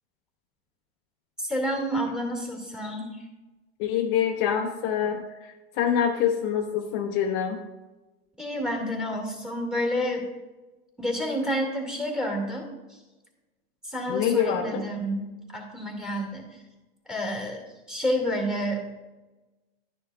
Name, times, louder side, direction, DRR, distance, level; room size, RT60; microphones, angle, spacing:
voice 1, 1.4-3.2 8.4-10.3 11.0-13.0 13.8-16.6 17.1-17.6 17.9-18.8, equal, ahead, 1 dB, 2.2 m, -29 dB
voice 2, 3.8-7.6 14.1-14.8, left 8 dB, 45° left, 3 dB, 0.9 m, -26 dB
11.5 x 10.5 x 2.4 m, 1.1 s
supercardioid pair, 135°, 31 cm